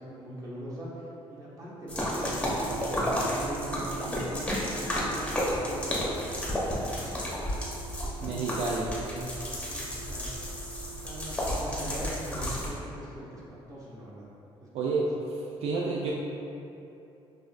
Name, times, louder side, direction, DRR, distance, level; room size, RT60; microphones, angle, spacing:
voice 1, 0.0-4.5 4.9-6.2 6.5-7.2 8.0-10.3 10.8-14.3 14.6-15.1, right 1 dB, 35° right, -7 dB, 1.1 m, -41 dB
sound 1, 1.9-12.7, equal, 10° left, 0.8 m, -32 dB
sound 2, 2.4-11.3, right 14 dB, 65° left, 0.8 m, -46 dB
voice 2, 8.2-8.9 14.7-15.1 15.6-16.1, right 4 dB, 75° right, -3 dB, 0.4 m, -29 dB
6.2 x 2.5 x 2.4 m, 2.8 s
cardioid pair, 130°, 10 cm